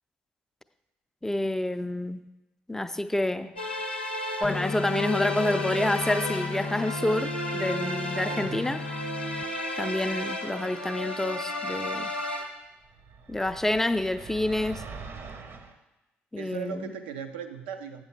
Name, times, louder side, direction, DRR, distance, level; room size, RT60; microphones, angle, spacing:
voice 1, 1.2-2.2 2.7-3.6 4.4-8.8 9.8-12.1 13.3-14.9 16.3-16.9, left 1 dB, 5° left, 0.4 m, -28 dB
sound 1, 3.6-12.4, left 1 dB, 90° left, 0.6 m, -33 dB
sound 2, 4.4-9.4, left 4 dB, 35° left, 0.8 m, -35 dB
voice 2, 8.3-8.9 16.4-18.0, right 7 dB, 75° right, 0.5 m, -38 dB
sound 3, 12.8-15.7, right 4 dB, 45° right, 0.8 m, -43 dB
8.4 x 6.1 x 4.2 m
figure-of-eight pair, 45°, 6 cm